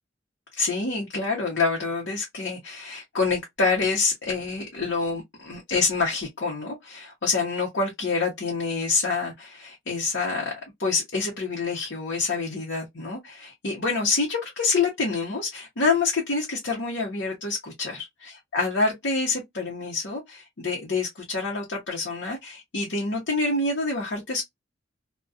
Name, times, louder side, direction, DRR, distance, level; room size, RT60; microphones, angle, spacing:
voice 1, 0.5-10.5 10.8-24.4, left 4 dB, 65° left, 0.8 m, -27 dB
2.4 x 2.2 x 2.4 m
head